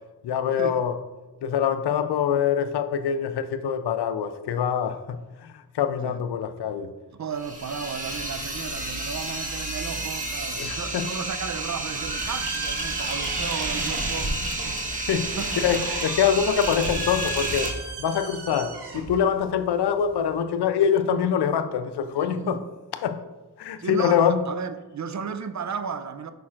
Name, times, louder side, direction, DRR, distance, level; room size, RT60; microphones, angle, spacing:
voice 1, 0.2-1.0 1.4-5.2 5.4-6.9 10.6-11.1 14.9-17.7 18.0-22.6 23.0-23.2 23.6-24.4, left 8 dB, 85° left, 0.5 m, -24 dB
voice 2, 7.1-14.8 15.4-15.5 18.5-18.7 22.3-22.7 23.8-26.3, right 6 dB, 45° right, 0.5 m, -34 dB
sound 1, 7.3-17.7, right 2 dB, 20° right, 1.1 m, -30 dB
sound 2, 11.3-20.4, right 3 dB, 85° right, 1.1 m, -36 dB
8.5 x 5.8 x 2.5 m
cardioid pair, 65°, 39 cm